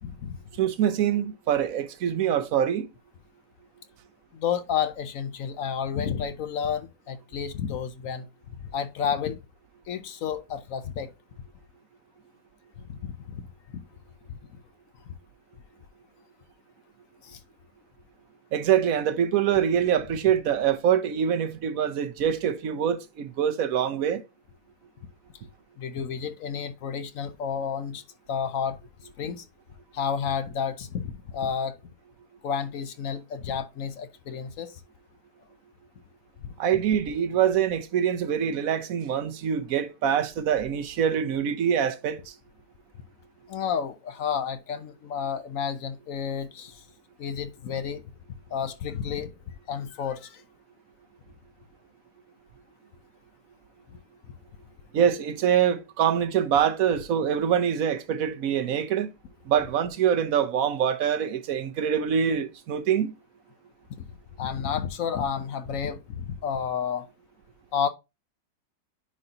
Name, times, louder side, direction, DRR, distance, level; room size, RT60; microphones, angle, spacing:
voice 1, 0.0-0.4 4.3-8.2 8.7-9.4 9.9-11.1 12.8-13.4 13.7-13.8 14.3-14.4 15.1-15.2 17.2-17.4 25.8-28.0 28.3-28.8 29.2-29.4 29.9-31.7 32.4-34.7 43.5-46.8 47.2-48.0 48.5-49.3 49.7-50.4 64.4-67.1 67.7-67.9, left 7 dB, 60° left, 0.9 m, -31 dB
voice 2, 0.6-2.9 18.5-24.2 36.6-42.3 54.9-59.1 59.5-63.1, right 9 dB, 60° right, 1.1 m, -24 dB
9.8 x 4.1 x 2.8 m
omnidirectional pair, 1.9 m